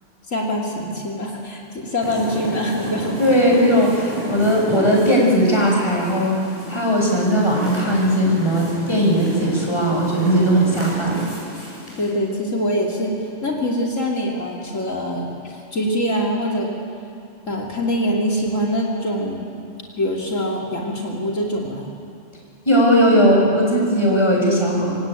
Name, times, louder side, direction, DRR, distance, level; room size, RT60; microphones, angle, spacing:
voice 1, 0.3-3.2 12.0-13.1 13.4-16.7 17.5-19.5 20.0-21.9, equal, 85° left, -2 dB, 3.4 m, -24 dB
sound 1, 2.0-12.1, left 1 dB, 10° right, 7.8 m, -33 dB
voice 2, 3.2-6.4 6.7-11.2 22.7-25.0, equal, 20° left, -3 dB, 7.0 m, -18 dB
26.0 x 24.5 x 9.2 m, 2.5 s
omnidirectional pair, 1.3 m